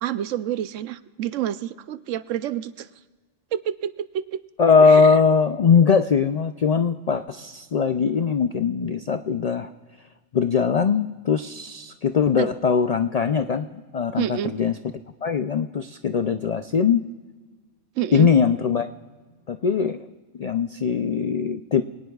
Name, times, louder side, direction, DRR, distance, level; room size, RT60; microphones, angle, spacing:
voice 1, 0.0-2.9 3.5-4.4 4.9-5.1 12.4-12.5 14.2-14.5 18.0-18.3, right 11 dB, 85° right, 14 dB, 1.0 m, -28 dB
voice 2, 4.6-9.7 10.3-14.7 15.2-17.1 18.1-18.9 19.5-20.0 20.4-21.8, left 6 dB, 65° left, 9 dB, 0.3 m, -21 dB
24.0 x 18.0 x 2.4 m, 1.4 s
omnidirectional pair, 1.3 m